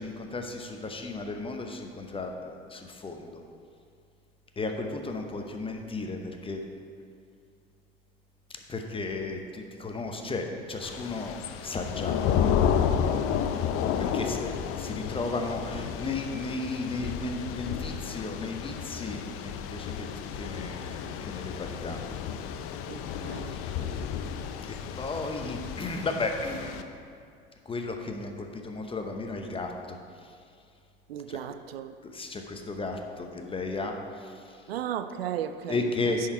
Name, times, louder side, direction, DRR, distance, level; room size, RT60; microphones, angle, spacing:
voice 1, 0.0-3.4 4.6-6.6 8.7-12.5 14.0-20.1 20.3-22.0 23.5-23.7 25.0-26.8 27.6-30.3 31.3-31.5 32.0-34.6 35.7-36.2, left 3 dB, 20° left, 0.9 m, -34 dB
Thunder / Rain, 10.8-26.8, left 8 dB, 50° left, 0.6 m, -31 dB
voice 2, 22.9-24.0 31.1-32.0 34.7-36.2, right 10 dB, 80° right, 0.4 m, -36 dB
10.0 x 4.8 x 4.5 m
hypercardioid pair, 70°, 30 cm